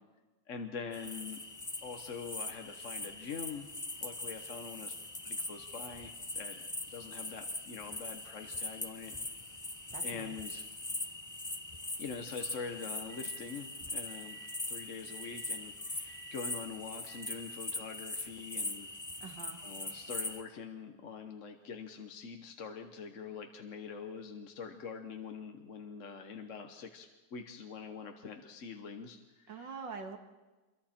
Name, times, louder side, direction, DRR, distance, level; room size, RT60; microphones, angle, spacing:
voice 1, 0.5-1.4 1.8-3.7 4.0-4.9 5.2-6.6 6.9-9.2 10.0-10.7 12.0-14.4 14.7-18.9 19.6-29.8, left 5 dB, 45° left, 5 dB, 1.3 m, -44 dB
sound 1, 0.9-20.4, left 2 dB, 15° left, 0.6 m, -41 dB
sound 2, 2.9-13.6 14.1-14.6 15.1-15.6 16.1-16.6 17.1-17.3, right 10 dB, 10° right, 2.7 m, -61 dB
voice 2, 9.9-10.4 19.2-19.6 29.5-30.2, right 5 dB, 75° right, 5 dB, 2.4 m, -44 dB
27.5 x 23.0 x 4.4 m, 1.2 s
omnidirectional pair, 2.0 m